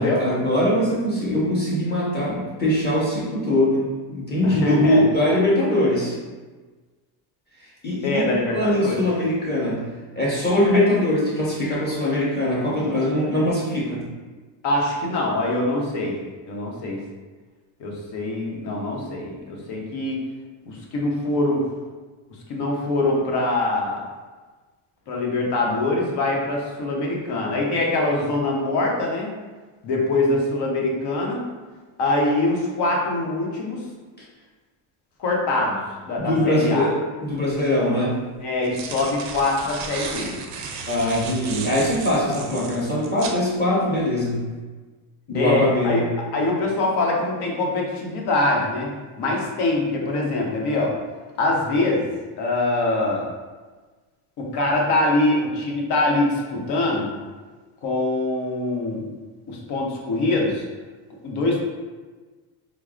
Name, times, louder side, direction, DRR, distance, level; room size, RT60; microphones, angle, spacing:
voice 1, 0.0-6.2 7.8-9.8 10.1-14.0 36.2-38.1 40.9-44.4 45.3-46.0, left 1 dB, 20° left, -7 dB, 1.2 m, -22 dB
voice 2, 4.4-5.0 8.0-9.0 10.7-10.8 14.6-16.2 16.5-17.0 17.8-20.2 20.6-21.6 22.5-24.0 25.1-29.3 29.8-31.5 32.0-33.8 35.2-36.9 38.4-40.4 45.3-46.0 46.3-48.9 49.2-50.9 51.4-52.0 52.4-53.3 54.4-57.1 57.8-59.1 59.5-60.7 61.2-61.6, left 2 dB, 60° left, -1 dB, 0.9 m, -23 dB
sound 1, 37.4-37.5 38.4-43.4, right 5 dB, 40° right, 0.5 m, -34 dB
4.5 x 2.0 x 2.4 m, 1.3 s
cardioid pair, 110°, 46 cm